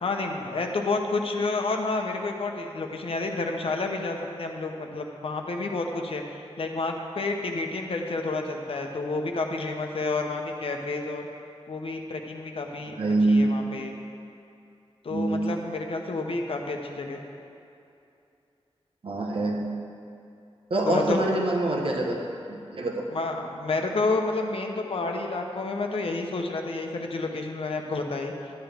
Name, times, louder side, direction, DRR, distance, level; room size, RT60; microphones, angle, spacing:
voice 1, 0.0-11.3 11.7-13.0 13.3-13.9 15.0-17.2 20.8-21.2 23.1-28.3, left 3 dB, 60° left, 3 dB, 0.9 m, -30 dB
voice 2, 12.9-13.6 15.1-15.4 19.0-19.7 20.7-22.1 22.5-23.0, right 2 dB, 60° right, 0 dB, 1.1 m, -25 dB
12.5 x 9.2 x 3.5 m, 2.6 s
wide cardioid pair, 130°, 11 cm